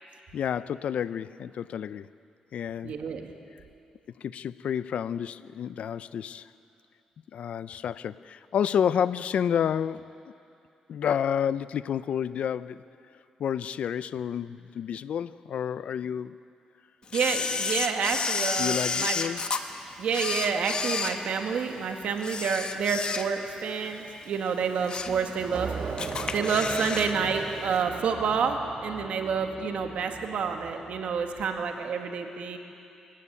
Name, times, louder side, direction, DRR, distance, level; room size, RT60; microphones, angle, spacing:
voice 1, 0.3-2.1 2.5-3.0 4.2-6.5 7.3-10.1 10.9-12.8 13.4-16.4 18.6-19.5, left 8 dB, 65° left, 16 dB, 0.5 m, -30 dB
voice 2, 2.8-3.3 17.1-19.2 20.0-25.7 26.3-32.6, right 6 dB, 70° right, 4 dB, 1.9 m, -28 dB
Camera, 17.1-19.6 20.1-21.7 22.2-23.6 23.9-24.1 24.6-25.2 25.5-25.6 26.0-27.1 27.4-27.5, left 5 dB, 40° left, 1.2 m, -31 dB
sound 1, 25.0-31.4, right 5 dB, 50° right, 1.3 m, -39 dB
26.0 x 15.0 x 8.8 m, 2.6 s
cardioid pair, 120°, 2 cm